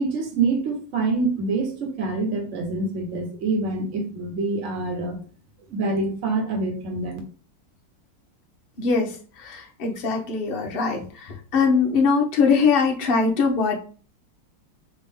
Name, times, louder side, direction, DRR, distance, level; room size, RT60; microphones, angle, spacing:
voice 1, 0.0-5.2 5.7-7.2, right 3 dB, 40° right, 3 dB, 1.2 m, -26 dB
voice 2, 8.8-13.8, left 5 dB, 60° left, 2 dB, 0.5 m, -22 dB
4.1 x 3.6 x 3.6 m, 0.39 s
omnidirectional pair, 2.4 m